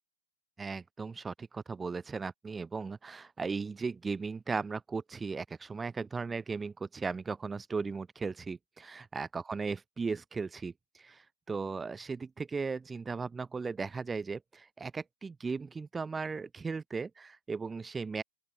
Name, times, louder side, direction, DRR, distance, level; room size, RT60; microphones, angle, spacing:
voice 1, 0.6-18.2, right 4 dB, 10° right, 1.2 m, -37 dB
open air
figure-of-eight pair, 105°, 0 cm